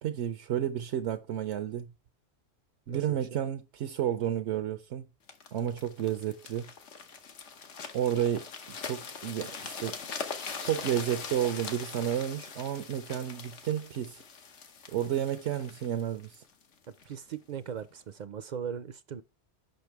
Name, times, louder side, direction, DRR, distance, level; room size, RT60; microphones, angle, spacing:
voice 1, 0.0-1.9 2.9-5.1 5.5-6.7 7.9-8.5 8.8-10.0 10.6-14.2 14.9-16.4, right 10 dB, 80° right, 0.9 m, -31 dB
voice 2, 2.9-3.2 17.1-19.2, right 8 dB, 55° right, 0.5 m, -39 dB
sound 1, 5.3-17.1 17.7-17.9, left 5 dB, 90° left, 1.3 m, -42 dB
6.6 x 5.6 x 4.5 m
omnidirectional pair, 1.2 m